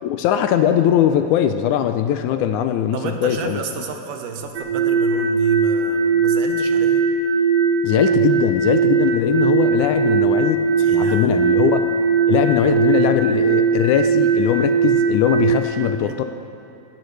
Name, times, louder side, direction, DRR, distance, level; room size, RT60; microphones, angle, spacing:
voice 1, 0.0-3.6 7.8-10.6 10.9-11.9 12.3-16.2, left 10 dB, 80° left, 8 dB, 1.9 m, -20 dB
voice 2, 2.9-7.0 10.8-11.4 16.0-16.2, right 5 dB, 85° right, 4 dB, 2.6 m, -31 dB
sound 1, 4.6-15.6, right 5 dB, 65° right, 1.9 m, -19 dB
19.5 x 17.5 x 3.3 m, 2.7 s
omnidirectional pair, 3.7 m